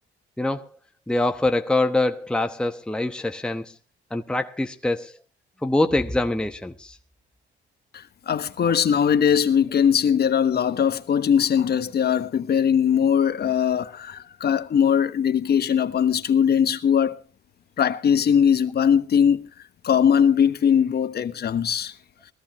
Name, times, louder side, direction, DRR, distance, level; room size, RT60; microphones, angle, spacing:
voice 1, 0.4-0.7 1.1-3.7 4.1-5.1 5.6-7.0, left 2 dB, 5° left, 1.1 m, -24 dB
voice 2, 7.9-17.2 17.8-19.5 19.8-21.9, left 8 dB, 55° left, 1.2 m, -20 dB
20.5 x 14.5 x 3.0 m
cardioid pair, 90°, 20 cm